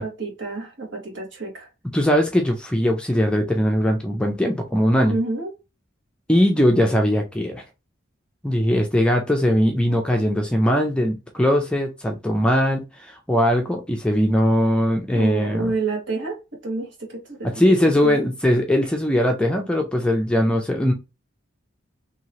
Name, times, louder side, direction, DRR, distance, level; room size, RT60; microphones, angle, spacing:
voice 1, 0.0-1.7 5.1-5.5 15.1-16.4 16.6-18.2, right 3 dB, 65° right, 1.6 m, -29 dB
voice 2, 1.9-5.1 6.3-7.6 8.4-15.7 17.6-20.9, equal, 5° left, 0.4 m, -20 dB
2.9 x 2.8 x 2.8 m
head